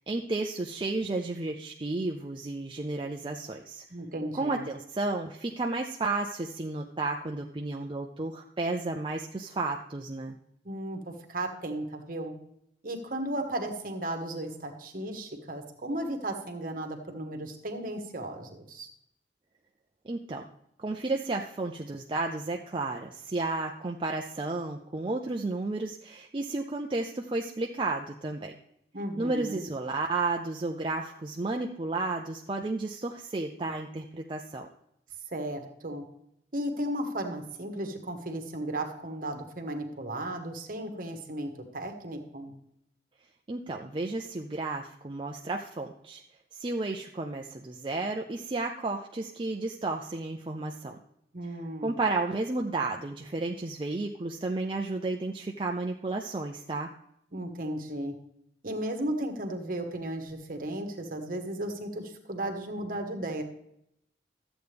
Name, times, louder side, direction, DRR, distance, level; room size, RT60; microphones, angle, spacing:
voice 1, 0.1-3.8 4.3-10.4 20.0-20.5 20.8-28.5 29.2-34.7 43.5-46.2 46.5-51.0 51.8-56.9, right 3 dB, 30° right, 2 dB, 0.5 m, -32 dB
voice 2, 3.9-4.6 10.6-12.3 12.8-18.9 28.9-29.7 35.3-36.0 36.5-42.5 51.3-52.0 57.3-58.1 58.6-63.4, right 1 dB, 50° right, 5 dB, 1.3 m, -35 dB
13.0 x 8.0 x 3.4 m, 0.76 s
head